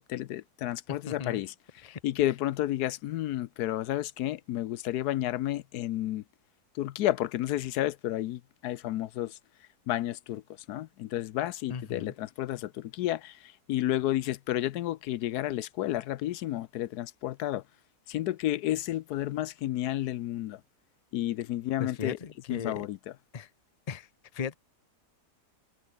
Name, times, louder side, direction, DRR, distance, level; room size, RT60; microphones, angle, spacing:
voice 1, 0.0-6.2 6.7-9.4 9.9-10.4 10.7-17.6 18.1-20.6 21.1-22.2 22.5-23.1, left 14 dB, 80° left, 1.2 m, -31 dB
voice 2, 1.1-1.4 1.8-2.0 11.7-12.1 21.8-22.9 23.3-23.5 23.9-24.1 24.3-24.5, left 6 dB, 30° left, 0.8 m, -37 dB
omnidirectional pair, 1.7 m